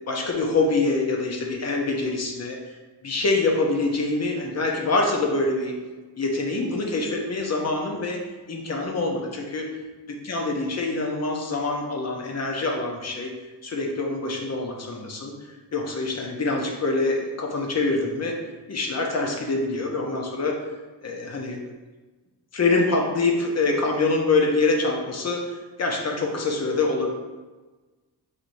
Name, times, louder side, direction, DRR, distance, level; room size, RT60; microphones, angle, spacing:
voice 1, 0.1-2.8 3.0-5.7 6.2-8.2 8.5-9.7 10.1-13.3 13.6-15.3 15.7-18.4 18.7-20.6 21.0-21.6 22.5-27.1, left 3 dB, 40° left, 0 dB, 0.6 m, -25 dB
4.2 x 3.1 x 2.6 m, 1.2 s
wide cardioid pair, 125°, 41 cm